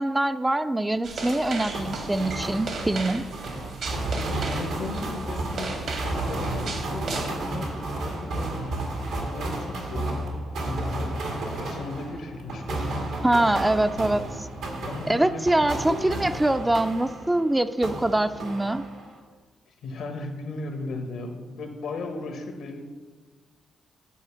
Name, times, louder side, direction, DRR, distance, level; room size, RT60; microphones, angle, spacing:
voice 1, 0.0-3.2 13.2-14.2 15.1-18.8, right 1 dB, 15° right, 11 dB, 0.4 m, -24 dB
sound 1, 1.0-7.3, right 3 dB, 75° right, 1.7 m, -36 dB
sound 2, 1.7-17.5 17.8-19.2, right 2 dB, 90° right, 1.8 m, -32 dB
voice 2, 4.4-13.1 14.7-16.2 19.7-22.8, left 2 dB, 75° left, 5 dB, 1.2 m, -37 dB
9.2 x 4.3 x 6.8 m, 1.4 s
supercardioid pair, 65°, 0 cm